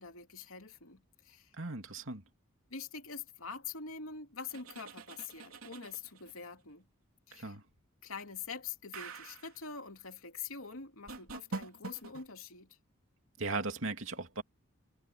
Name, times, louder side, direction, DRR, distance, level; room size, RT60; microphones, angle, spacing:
voice 1, 0.0-1.5 2.7-6.8 7.3-7.6 8.0-12.7, left 5 dB, 85° left, 3.0 m, -45 dB
voice 2, 1.6-2.2 7.3-7.6 13.4-14.4, right 3 dB, 70° right, 2.8 m, -37 dB
sound 1, 4.5-6.4 8.9-9.6 11.1-12.2, right 3 dB, 85° right, 3.4 m, -45 dB
head